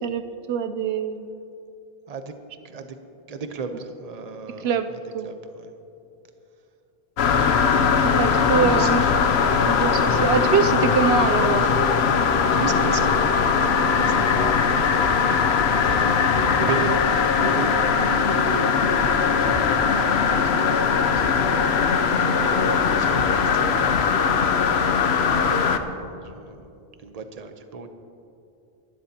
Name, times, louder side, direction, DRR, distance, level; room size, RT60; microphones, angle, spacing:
voice 1, 0.0-1.3 4.6-4.9 5.1-5.3 8.2-9.0 9.6-11.9, right 6 dB, 80° right, 9 dB, 0.8 m, -24 dB
voice 2, 2.6-3.0 3.3-5.7 7.8-9.1 12.5-13.2 13.6-15.5 15.8-16.3 16.5-25.0 25.3-26.7 27.0-27.9, right 4 dB, 40° right, 7 dB, 0.9 m, -35 dB
sound 1, 7.2-25.8, left 6 dB, 85° left, 1.0 m, -20 dB
sound 2, 15.9-17.8 18.5-24.4, left 2 dB, 60° left, 1.4 m, -39 dB
25.0 x 12.0 x 2.9 m, 2.7 s
omnidirectional pair, 1.1 m